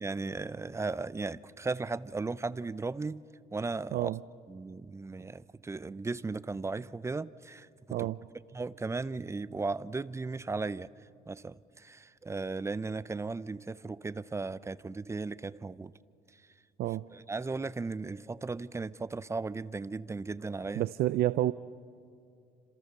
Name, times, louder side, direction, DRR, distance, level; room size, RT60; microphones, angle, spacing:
voice 1, 0.0-3.2 3.5-4.1 4.5-7.7 8.0-8.1 8.5-10.9 11.3-15.9 17.1-20.9, right 3 dB, 15° right, 0.6 m, -36 dB
voice 2, 20.8-21.5, right 14 dB, 65° right, 0.6 m, -29 dB
30.0 x 26.5 x 6.8 m
cardioid pair, 110°, 17 cm